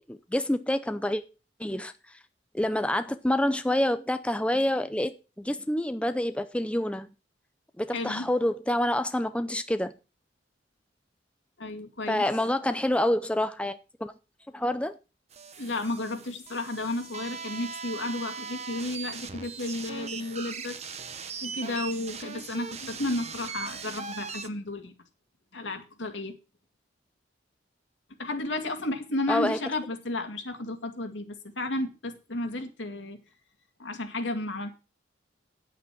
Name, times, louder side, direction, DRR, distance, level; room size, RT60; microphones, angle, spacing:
voice 1, 0.1-1.2 1.6-1.9 2.5-5.1 5.4-7.1 7.8-9.9 12.1-14.1 14.5-15.0 29.3-29.6, left 1 dB, 5° left, 0.6 m, -27 dB
voice 2, 7.9-8.3 11.6-12.2 15.6-20.8 21.4-24.9 25.5-26.3 28.2-33.2 33.8-34.7, left 2 dB, 85° left, 2.2 m, -33 dB
sound 1, 15.3-24.5, right 6 dB, 35° right, 1.0 m, -39 dB
9.3 x 8.5 x 6.0 m
head